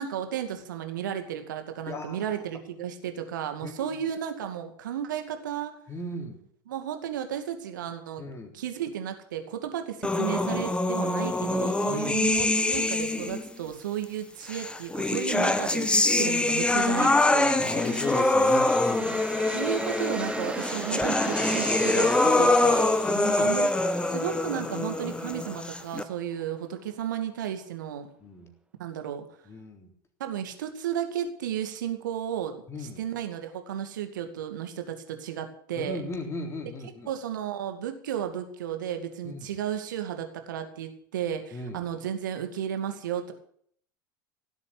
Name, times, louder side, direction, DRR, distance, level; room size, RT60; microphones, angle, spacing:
voice 1, 0.0-5.8 6.7-8.2 8.5-17.6 19.5-23.0 23.4-23.7 24.0-28.1 28.8-29.3 30.2-36.0 37.1-43.3, right 9 dB, 65° right, 6 dB, 2.3 m, -33 dB
voice 2, 1.9-2.4 3.6-4.0 5.9-6.4 8.2-8.5 11.9-12.3 17.6-19.2 23.1-23.6 28.2-28.5 29.5-29.9 32.7-33.0 35.8-37.1 39.2-39.5 41.5-41.8, left 2 dB, 25° left, 4 dB, 3.6 m, -36 dB
sound 1, 10.0-13.5 14.5-26.0, left 2 dB, 10° left, 1.2 m, -25 dB
sound 2, 16.3-26.1, right 3 dB, 10° right, 1.6 m, -38 dB
17.0 x 8.2 x 8.8 m, 0.64 s
figure-of-eight pair, 80°, 11 cm